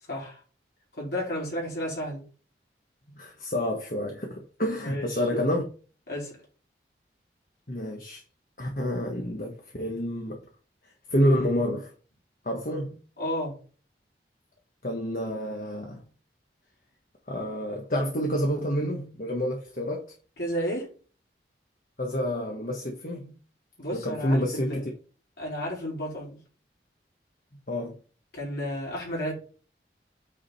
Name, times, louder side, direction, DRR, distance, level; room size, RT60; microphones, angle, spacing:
voice 1, 0.1-0.4 0.9-2.3 4.8-5.4 6.1-6.4 13.2-13.6 20.4-20.9 23.8-24.8 25.4-26.4 28.3-29.3, equal, 65° left, 4.7 m, -32 dB
voice 2, 3.1-5.6 7.7-8.2 8.6-10.4 11.1-11.9 12.4-13.0 14.8-16.0 17.3-20.1 22.0-23.3 23.9-24.9 27.7-27.9, equal, 50° left, 1.5 m, -28 dB
8.8 x 5.0 x 4.3 m
head